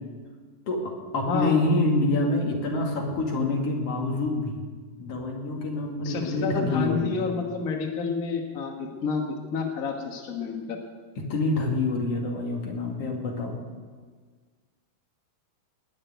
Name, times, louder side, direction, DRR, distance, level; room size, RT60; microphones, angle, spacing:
voice 1, 0.7-4.6 5.0-7.2 11.2-13.6, left 2 dB, 45° left, 0 dB, 2.8 m, -27 dB
voice 2, 1.3-1.6 6.0-10.8, left 4 dB, 70° left, 2 dB, 0.8 m, -29 dB
19.5 x 6.7 x 9.3 m, 1.5 s
omnidirectional pair, 4.1 m